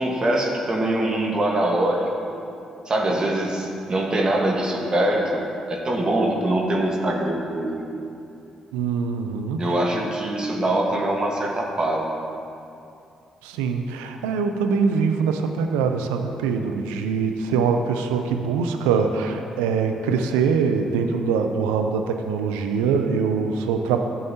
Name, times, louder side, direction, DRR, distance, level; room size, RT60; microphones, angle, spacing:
voice 1, 0.0-2.3 2.8-7.8 9.6-12.2, right 1 dB, 40° right, 0 dB, 1.4 m, -23 dB
voice 2, 8.7-9.6 13.4-24.0, right 5 dB, 90° right, 5 dB, 0.5 m, -23 dB
11.0 x 7.7 x 2.8 m, 2.6 s
hypercardioid pair, 50°, 2 cm